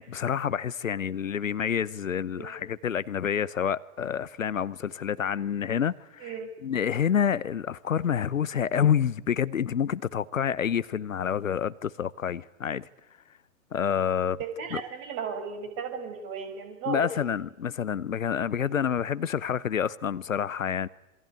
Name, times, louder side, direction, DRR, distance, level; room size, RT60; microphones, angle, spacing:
voice 1, 0.0-6.3 6.6-12.9 13.7-14.4 14.7-14.8 16.9-20.9, left 8 dB, 70° left, 0.9 m, -28 dB
voice 2, 14.4-17.0, right 6 dB, 35° right, 6.2 m, -35 dB
27.5 x 23.5 x 9.4 m
figure-of-eight pair, 105°, 42 cm